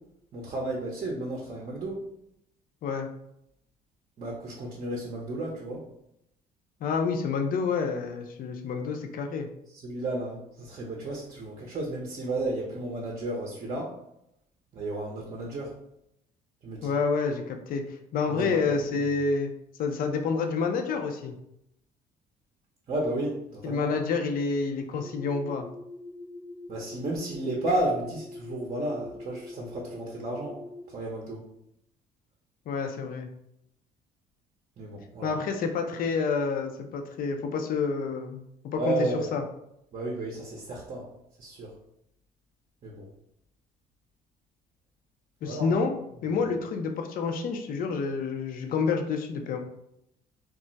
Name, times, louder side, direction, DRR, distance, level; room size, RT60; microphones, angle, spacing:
voice 1, 0.3-2.1 4.2-5.8 9.8-14.0 14.7-15.7 16.6-16.9 18.3-19.0 22.9-23.9 26.7-30.6 30.9-31.5 34.8-35.3 38.7-39.3 39.9-41.1 41.4-41.7 42.8-43.1 45.4-45.8, right 2 dB, 40° right, -1 dB, 0.6 m, -33 dB
voice 2, 6.8-9.5 16.8-19.5 19.8-21.4 23.6-25.7 32.7-33.3 35.2-39.4 45.4-45.9 46.2-49.6, left 5 dB, 55° left, 5 dB, 0.5 m, -28 dB
sound 1, 25.0-30.9, left 2 dB, 5° left, 0.5 m, -43 dB
2.3 x 2.1 x 3.9 m, 0.79 s
cardioid pair, 110°, 17 cm